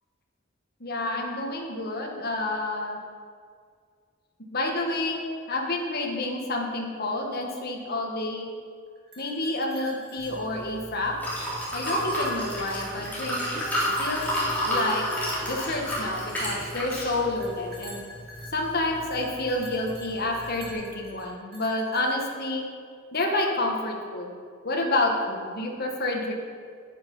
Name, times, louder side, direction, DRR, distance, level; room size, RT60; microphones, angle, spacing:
voice 1, 0.8-3.0 4.5-5.2 5.5-8.5 9.2-11.1 11.7-13.4 14.0-14.3 14.6-15.0 15.5-18.0 18.5-22.6 23.1-24.3 24.6-26.3, left 2 dB, 50° left, 0 dB, 1.5 m, -29 dB
sound 1, 9.0-10.9 11.3-13.2 13.7-16.5 17.4-22.5, left 2 dB, 50° right, 1.9 m, -45 dB
Liquid, 10.2-20.7, equal, 10° left, 3.3 m, -32 dB
9.8 x 9.3 x 5.5 m, 2.1 s
head